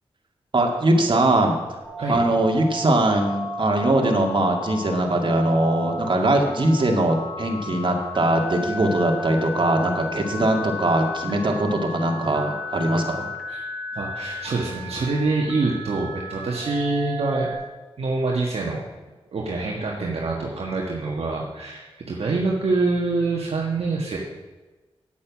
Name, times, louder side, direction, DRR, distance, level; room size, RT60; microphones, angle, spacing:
voice 1, 0.5-1.6 2.1-13.3, right 1 dB, 50° right, 2 dB, 2.3 m, -21 dB
Telephone, 1.8-17.5, left 1 dB, 5° left, 4.2 m, -34 dB
voice 2, 13.9-17.5 18.0-18.8 19.3-24.2, right 3 dB, 65° right, -2 dB, 1.6 m, -25 dB
9.2 x 8.6 x 6.1 m, 1.2 s
cardioid pair, 40°, 11 cm